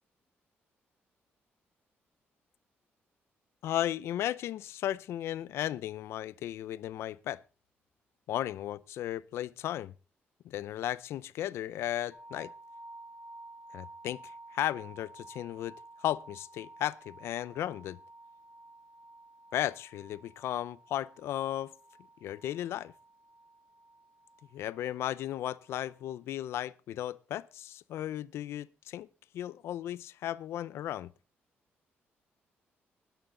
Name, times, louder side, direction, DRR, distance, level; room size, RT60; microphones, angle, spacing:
voice 1, 3.6-7.4 8.3-9.9 10.4-12.5 13.7-18.0 19.5-21.7 22.2-22.9 24.5-29.1 29.3-31.1, left 12 dB, 90° left, 0.5 m, -35 dB
sound 1, 12.1-26.1, right 2 dB, 10° right, 3.5 m, -53 dB
20.0 x 9.0 x 3.8 m
cardioid pair, 155°, 4 cm